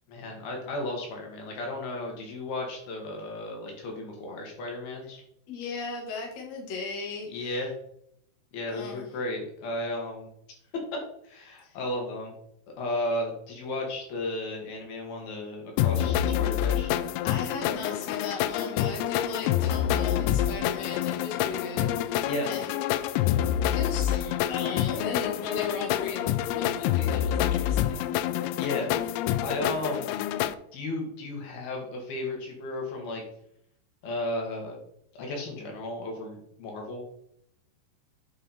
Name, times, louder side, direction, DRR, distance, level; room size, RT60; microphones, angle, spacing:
voice 1, 0.1-5.2 7.3-7.7 8.5-10.3 10.7-12.3 12.8-16.9 22.3-22.5 28.6-28.9 29.4-30.1 30.7-33.2 34.0-34.8 35.1-37.0, left 2 dB, 65° left, 0 dB, 3.7 m, -34 dB
voice 2, 5.5-7.6 8.7-9.1 11.6-11.8 17.2-22.8 23.5-28.1, left 4 dB, 50° left, 0 dB, 2.3 m, -37 dB
sound 1, 15.8-30.5, left 11 dB, 85° left, 2.4 m, -27 dB
8.9 x 5.4 x 4.3 m, 0.71 s
omnidirectional pair, 4.8 m